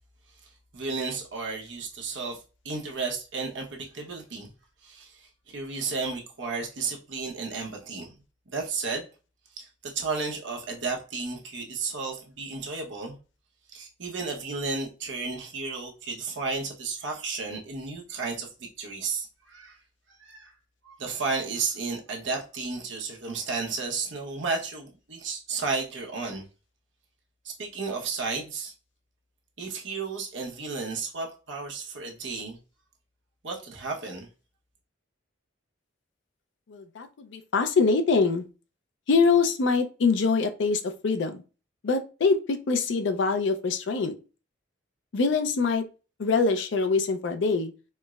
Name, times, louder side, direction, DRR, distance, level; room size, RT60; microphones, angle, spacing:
voice 1, 0.7-2.4 2.6-4.5 4.8-8.1 8.5-9.1 9.6-13.2 13.7-19.8 20.2-20.5 20.8-26.4 27.4-28.7 29.6-32.6 33.4-34.3, right 4 dB, 65° right, 0.9 m, -33 dB
voice 2, 36.7-38.4 39.1-41.4 41.8-44.1 45.1-45.8 46.2-47.7, left 4 dB, 65° left, 0.4 m, -24 dB
4.3 x 2.0 x 2.3 m
head